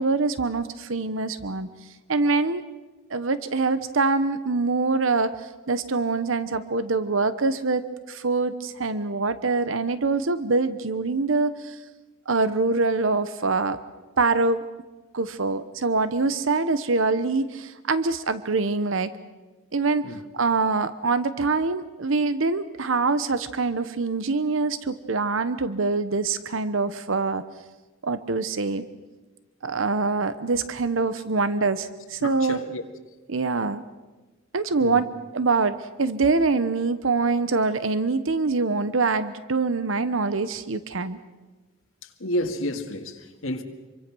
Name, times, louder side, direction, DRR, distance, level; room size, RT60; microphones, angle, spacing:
voice 1, 0.0-1.7 2.1-2.6 3.1-11.8 12.3-13.8 14.2-14.6 15.1-19.1 19.7-27.4 28.0-28.8 29.6-32.6 33.3-33.8 34.5-35.1 35.3-41.2, right 3 dB, 70° right, 0.9 m, -24 dB
voice 2, 32.2-32.8 34.8-35.1 42.0-43.6, left 1 dB, 80° left, 2.0 m, -30 dB
26.0 x 24.5 x 6.2 m
head